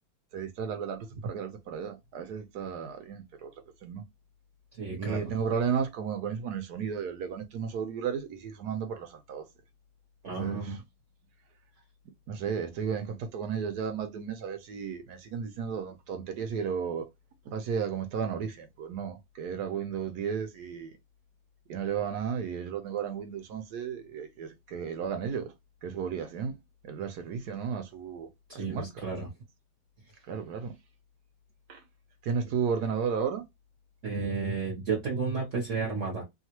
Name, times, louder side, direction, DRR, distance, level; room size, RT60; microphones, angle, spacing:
voice 1, 0.3-3.5 3.8-4.0 5.0-9.4 10.3-10.8 12.3-17.1 17.5-20.9 21.7-25.5 25.8-26.6 26.8-28.3 28.5-29.0 30.3-30.7 31.7-31.8 32.2-33.5, right 7 dB, 65° right, 1.2 m, -33 dB
voice 2, 4.8-5.3 10.2-10.8 28.5-29.3 34.0-36.2, right 4 dB, 50° right, 1.2 m, -32 dB
3.1 x 2.4 x 2.9 m
omnidirectional pair, 2.0 m